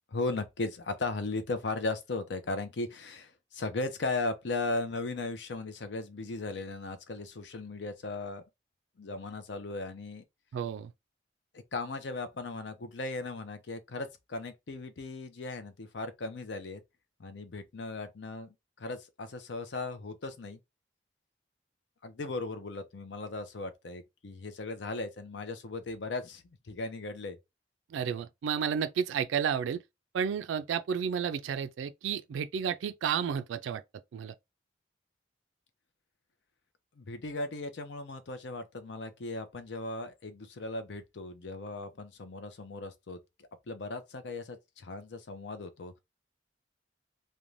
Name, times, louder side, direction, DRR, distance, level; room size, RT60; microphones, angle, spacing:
voice 1, 0.1-8.4 9.0-10.2 11.7-16.8 17.2-20.6 22.0-27.4 37.0-43.2 43.7-46.0, left 3 dB, 65° left, 0.5 m, -37 dB
voice 2, 10.5-10.9 27.9-29.8 30.1-33.8 34.1-34.3, right 7 dB, 80° right, 0.3 m, -31 dB
2.6 x 2.2 x 3.0 m
head